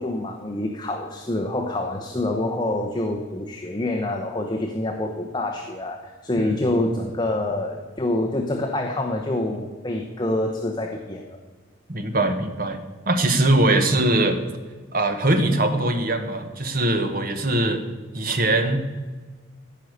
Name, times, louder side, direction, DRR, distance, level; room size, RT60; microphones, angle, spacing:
voice 1, 0.0-11.4, left 1 dB, 20° left, 2 dB, 0.8 m, -26 dB
voice 2, 11.9-12.8 13.1-14.4 14.9-17.8 18.1-18.8, right 2 dB, 45° right, 6 dB, 1.2 m, -21 dB
14.5 x 5.7 x 6.5 m, 1.3 s
head